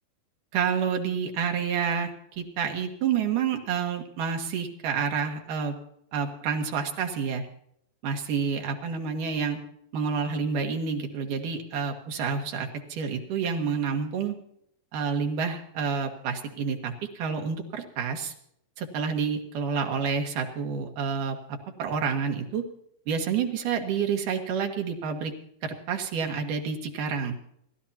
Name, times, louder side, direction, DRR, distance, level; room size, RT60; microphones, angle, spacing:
voice 1, 0.5-2.1 2.4-5.7 6.1-7.4 8.0-9.6 9.9-14.4 14.9-18.3 18.8-22.6 23.1-25.3 25.6-27.3, right 6 dB, 70° right, 3 dB, 3.1 m, -29 dB
29.5 x 12.0 x 2.9 m, 0.71 s
omnidirectional pair, 4.0 m